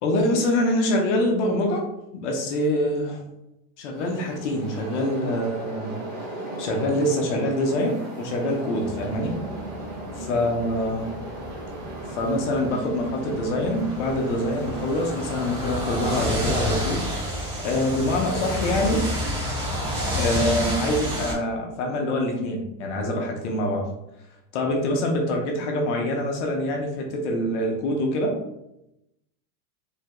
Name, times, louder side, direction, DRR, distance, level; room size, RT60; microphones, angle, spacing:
voice 1, 0.0-1.9 2.1-3.2 3.8-9.4 10.2-11.1 12.1-19.1 20.2-23.9 24.5-28.4, left 1 dB, 50° left, 1 dB, 0.5 m, -25 dB
sound 1, 4.0-15.7, right 1 dB, 45° right, 1.2 m, -37 dB
sound 2, 8.9-21.3, equal, 65° right, 1.4 m, -30 dB
3.2 x 2.2 x 2.8 m, 0.86 s
supercardioid pair, 175°, 47 cm